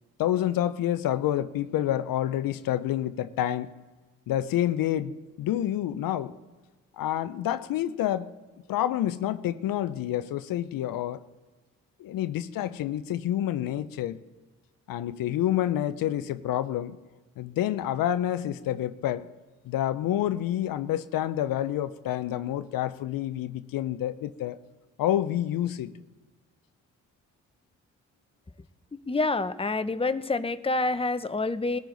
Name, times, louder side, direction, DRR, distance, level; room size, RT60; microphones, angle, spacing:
voice 1, 0.2-3.7 4.3-6.3 6.9-8.3 8.7-11.2 12.0-14.2 14.9-17.0 17.4-19.3 19.7-24.6 25.0-25.9, left 12 dB, 80° left, 0.6 m, -28 dB
voice 2, 29.1-31.8, left 3 dB, 15° left, 0.8 m, -27 dB
19.5 x 13.5 x 3.9 m
supercardioid pair, 40°, 33 cm